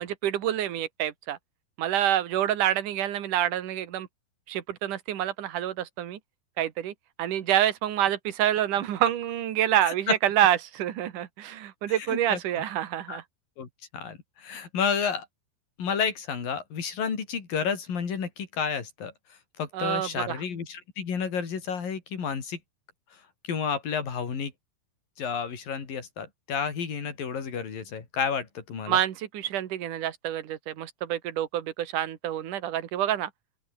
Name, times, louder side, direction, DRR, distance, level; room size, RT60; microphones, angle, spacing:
voice 1, 0.0-1.4 1.8-4.1 4.5-6.2 6.6-6.9 7.2-13.2 19.7-20.4 28.9-33.3, right 11 dB, 60° right, 3.2 m, -27 dB
voice 2, 11.9-12.4 13.1-13.2 13.6-15.3 15.8-19.1 19.6-22.6 23.4-24.5 25.2-29.0, left 6 dB, 65° left, 5.8 m, -31 dB
open air
omnidirectional pair, 4.3 m